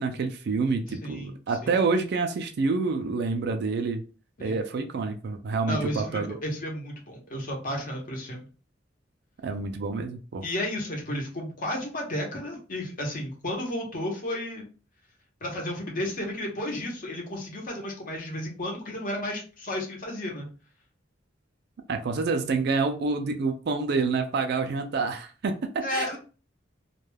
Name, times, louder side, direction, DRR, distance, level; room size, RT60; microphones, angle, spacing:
voice 1, 0.0-4.0 4.4-6.4 9.4-10.4 21.9-26.2, right 4 dB, 60° right, 5 dB, 0.4 m, -28 dB
voice 2, 0.9-1.3 1.6-1.7 4.4-4.6 5.7-8.5 10.4-14.6 15.4-20.5 25.8-26.2, left 1 dB, 50° left, 0 dB, 0.9 m, -33 dB
2.2 x 2.2 x 3.2 m, 0.37 s
head